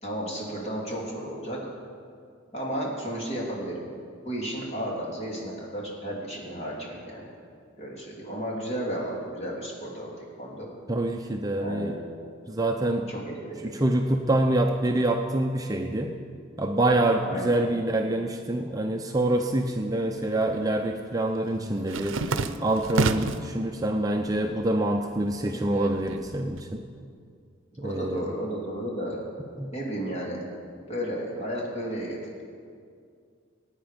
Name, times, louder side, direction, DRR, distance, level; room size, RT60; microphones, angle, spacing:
voice 1, 0.0-1.6 2.5-3.8 4.2-7.3 7.8-10.7 11.6-12.1 13.1-13.7 17.2-17.6 27.8-29.2 29.7-30.5 30.9-32.4, equal, 35° left, -3 dB, 3.0 m, -33 dB
voice 2, 10.9-11.9 12.5-13.1 13.6-16.2 16.6-22.2 22.6-26.8 27.8-28.2 29.6-29.7, right 1 dB, 20° right, 3 dB, 0.6 m, -26 dB
sound 1, 19.6-20.4 20.7-23.5 24.0-24.6 24.9-26.6, right 3 dB, 80° right, 0.6 m, -31 dB
18.5 x 9.0 x 5.2 m, 2.2 s
head